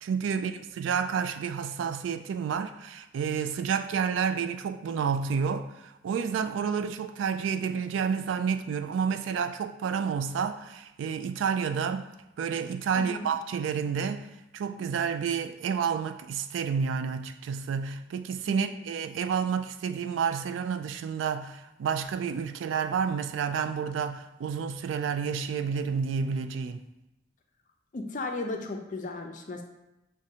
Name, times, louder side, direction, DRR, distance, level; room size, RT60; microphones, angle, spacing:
voice 1, 0.0-12.1 12.4-14.3 14.5-26.8, right 6 dB, 90° right, 11 dB, 0.3 m, -30 dB
voice 2, 12.9-13.3 18.5-18.7 27.9-29.6, left 2 dB, 45° left, 3 dB, 0.4 m, -35 dB
6.0 x 2.2 x 2.7 m, 0.93 s
head